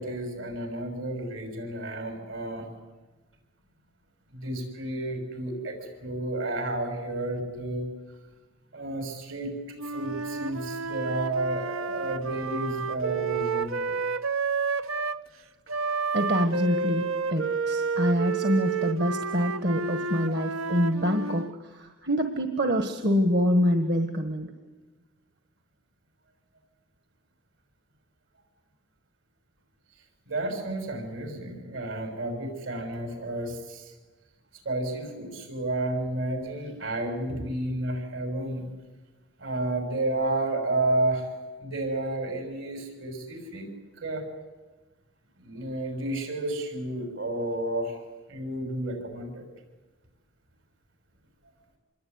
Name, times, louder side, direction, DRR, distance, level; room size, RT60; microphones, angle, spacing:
voice 1, 0.0-2.7 4.3-7.9 8.7-9.5 9.8-14.0 30.3-33.9 34.6-38.7 39.4-41.3 41.6-43.7 44.0-44.2 45.4-48.0 48.3-49.5, right 2 dB, 75° right, 5 dB, 6.4 m, -31 dB
Wind instrument woodwind instrument, 9.8-15.2 15.7-21.6, right 5 dB, 90° right, 1.0 m, -30 dB
voice 2, 16.1-24.5, equal, 55° right, 7 dB, 1.6 m, -26 dB
26.5 x 22.0 x 9.6 m, 1.2 s
head